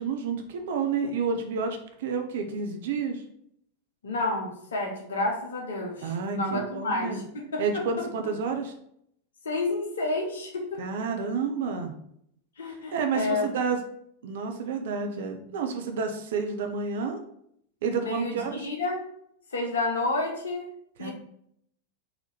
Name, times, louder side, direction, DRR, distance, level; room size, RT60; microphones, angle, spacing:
voice 1, 0.0-3.2 6.0-7.2 7.6-8.7 10.8-11.9 12.7-13.8 14.2-17.2 17.8-18.7 21.0-21.1, right 5 dB, 55° right, 5 dB, 0.6 m, -30 dB
voice 2, 4.0-7.2 7.5-7.8 9.4-10.8 12.6-13.5 17.9-19.0 19.5-20.7 21.0-21.1, left 2 dB, 65° left, 1 dB, 0.8 m, -30 dB
4.1 x 2.8 x 4.1 m, 0.71 s
figure-of-eight pair, 90°, 0 cm